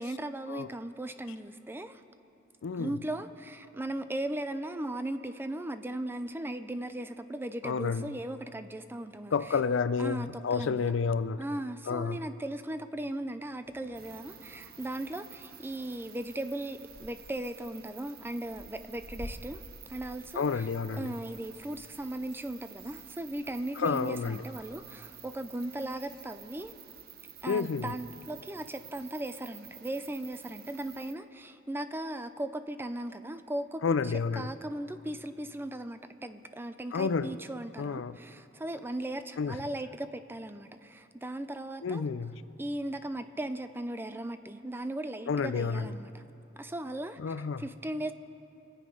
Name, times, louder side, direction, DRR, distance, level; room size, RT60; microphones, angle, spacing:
voice 1, 0.0-2.0 2.7-9.6 10.0-10.8 11.4-19.6 19.9-20.7 20.9-26.7 27.4-42.1 42.6-46.2 46.6-48.1, right 1 dB, 10° right, 10 dB, 0.5 m, -37 dB
voice 2, 2.6-3.0 7.6-8.2 9.3-11.4 11.9-12.2 20.3-21.1 23.8-24.4 27.5-27.9 33.8-34.5 36.9-37.3 37.8-38.2 39.4-39.6 41.8-42.4 45.3-45.9 47.2-47.6, left 5 dB, 70° left, 14 dB, 0.4 m, -30 dB
sound 1, 13.6-26.7, left 1 dB, 25° left, 1.7 m, -53 dB
sound 2, 13.9-31.1, right 10 dB, 50° right, 0.7 m, -51 dB
26.5 x 8.9 x 5.3 m, 2.8 s
head